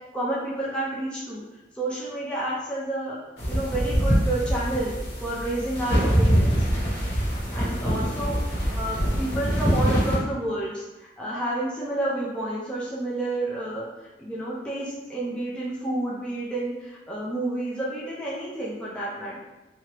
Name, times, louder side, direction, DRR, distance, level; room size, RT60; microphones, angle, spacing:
voice 1, 0.1-1.4 1.7-3.2 3.5-4.9 5.2-6.6 7.5-10.8 11.2-13.8 14.2-19.4, right 1 dB, 5° left, -7 dB, 0.5 m, -30 dB
sound 1, 3.4-10.2, equal, 65° left, 1.3 m, -24 dB
3.0 x 2.4 x 2.9 m, 1.1 s
head